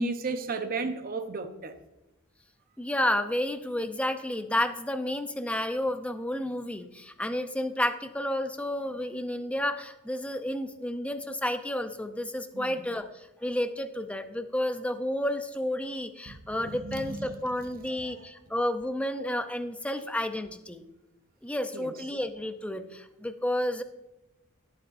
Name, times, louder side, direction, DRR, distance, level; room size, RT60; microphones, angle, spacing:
voice 1, 0.0-1.7 12.5-12.8 16.3-16.4 16.7-17.4 17.9-18.3 21.7-21.9, right 3 dB, 40° right, 0.8 m, -34 dB
voice 2, 2.8-20.8 21.4-23.8, left 1 dB, 5° left, 0.6 m, -31 dB
17.5 x 8.6 x 2.6 m
head